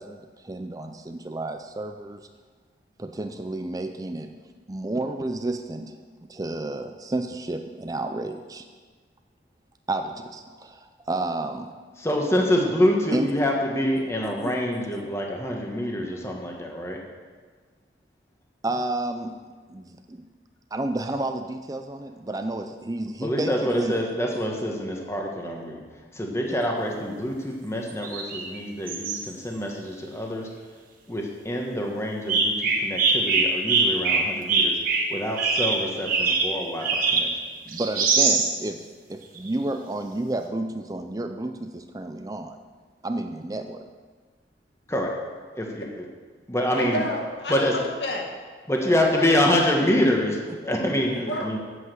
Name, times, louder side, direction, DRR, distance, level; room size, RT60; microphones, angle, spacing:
voice 1, 0.0-2.2 3.0-4.4 4.7-6.0 6.3-8.7 9.9-11.7 13.1-13.3 14.2-14.6 18.6-19.4 19.7-20.3 20.7-24.0 26.3-26.6 37.6-42.6 43.0-43.9 50.7-50.8, right 2 dB, 20° right, 7 dB, 0.4 m, -31 dB
voice 2, 12.0-17.0 23.2-25.8 26.1-30.5 31.1-34.8 35.1-37.3 44.9-45.1 45.6-46.0 46.5-47.0 47.5-47.7 48.7-51.6, left 1 dB, 15° left, 0 dB, 1.3 m, -26 dB
sound 1, 27.9-28.6 28.9-29.2 32.3-37.4 37.7-38.5 39.4-39.5, right 4 dB, 50° right, 1.3 m, -23 dB
voice 3, 46.7-48.2 48.9-49.3 51.3-51.6, left 1 dB, 70° left, 1 dB, 1.9 m, -30 dB
8.2 x 8.2 x 7.6 m, 1.5 s
head